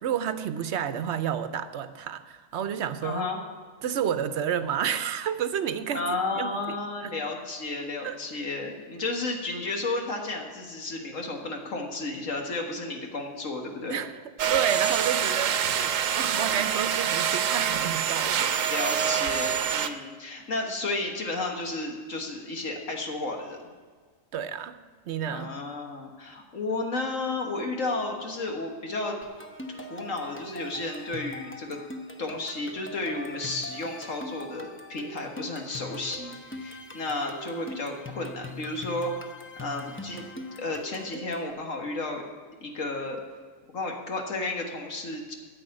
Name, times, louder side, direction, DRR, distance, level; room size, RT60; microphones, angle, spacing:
voice 1, 0.0-3.2 3.8-6.0 6.4-7.1 8.0-8.2 13.9-14.1 14.5-18.8 24.3-24.8 25.1-25.5, right 8 dB, 65° right, 11 dB, 1.0 m, -30 dB
voice 2, 3.0-3.4 5.9-14.0 18.7-23.6 25.2-29.2 29.8-31.8 32.2-39.1 39.6-40.3 40.6-42.2 42.6-43.2 43.7-45.4, left 2 dB, 85° left, 2 dB, 2.0 m, -32 dB
sound 1, 14.4-19.9, right 8 dB, 85° right, 1.1 m, -26 dB
sound 2, 29.2-41.5, left 1 dB, 10° left, 0.6 m, -42 dB
10.0 x 7.8 x 8.7 m, 1.5 s
omnidirectional pair, 1.3 m